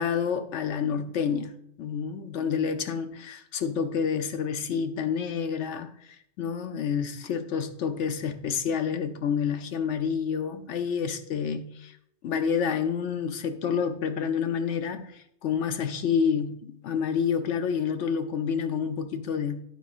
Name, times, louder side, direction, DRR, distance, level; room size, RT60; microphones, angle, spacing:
voice 1, 0.0-1.5 1.8-5.9 6.4-11.9 12.2-19.6, left 7 dB, 85° left, 1.0 m, -28 dB
10.0 x 9.2 x 2.5 m
omnidirectional pair, 1.2 m